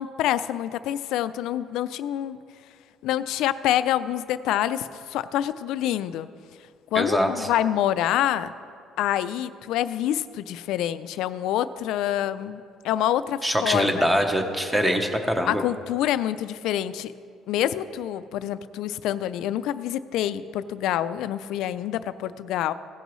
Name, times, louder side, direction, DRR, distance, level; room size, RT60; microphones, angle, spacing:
voice 1, 0.0-2.4 3.0-6.3 6.9-8.5 9.0-14.1 15.5-17.1 17.5-22.7, left 12 dB, 80° left, 14 dB, 0.3 m, -26 dB
voice 2, 6.9-7.5 13.4-15.6, equal, 5° right, 5 dB, 0.8 m, -23 dB
16.5 x 8.0 x 3.1 m, 2.3 s
cardioid pair, 135°, 0 cm